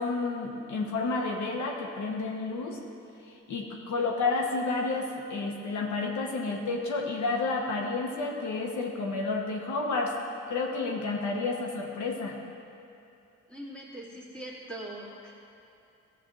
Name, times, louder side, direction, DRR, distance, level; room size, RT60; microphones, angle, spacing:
voice 1, 0.0-2.8 3.5-10.1 10.5-12.4, left 3 dB, 70° left, 1 dB, 1.0 m, -30 dB
voice 2, 13.5-15.4, right 1 dB, 5° left, -5 dB, 2.0 m, -42 dB
14.0 x 7.6 x 3.0 m, 2.7 s
cardioid pair, 90°, 30 cm